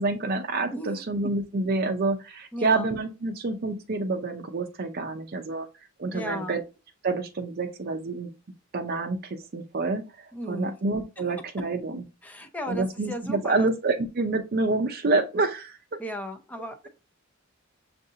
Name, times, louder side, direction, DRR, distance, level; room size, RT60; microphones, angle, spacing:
voice 1, 0.0-5.7 6.0-6.6 7.0-8.3 8.7-12.0 12.7-15.8, right 3 dB, 45° right, 0.5 m, -28 dB
voice 2, 0.7-1.0 2.5-2.9 6.1-6.6 10.3-10.8 12.2-13.7 16.0-16.9, equal, 10° left, 0.6 m, -35 dB
6.3 x 2.6 x 2.7 m
head